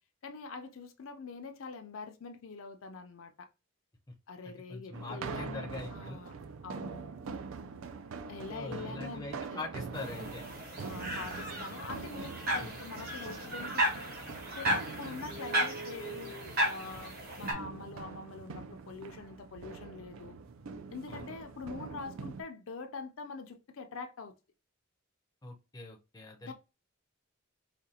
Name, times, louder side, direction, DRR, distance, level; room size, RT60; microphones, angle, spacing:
voice 1, 0.2-3.5 4.3-6.3 6.6-7.0 8.3-9.6 10.8-13.9 14.5-20.4 20.9-24.3 26.4-26.5, left 4 dB, 70° left, 0.5 m, -44 dB
voice 2, 4.4-6.2 8.5-10.4 12.6-12.8 21.1-21.3 25.4-26.5, left 2 dB, 15° left, 0.5 m, -43 dB
sound 1, 4.9-22.4, right 5 dB, 75° right, 0.4 m, -44 dB
sound 2, 9.9-17.5, right 1 dB, 45° right, 1.2 m, -35 dB
4.9 x 2.2 x 2.8 m
head